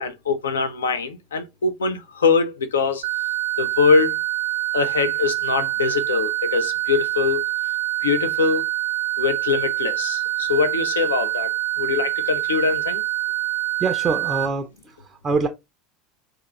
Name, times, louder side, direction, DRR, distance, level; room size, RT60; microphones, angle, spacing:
voice 1, 0.0-3.1 3.6-4.2 4.7-7.5 8.0-8.6 9.2-13.0, left 5 dB, 75° left, 0.4 m, -22 dB
sound 1, 3.0-14.5, right 15 dB, 70° right, 0.6 m, -25 dB
voice 2, 13.8-15.5, right 4 dB, 25° right, 0.4 m, -25 dB
2.5 x 2.3 x 3.0 m
figure-of-eight pair, 80°, 0 cm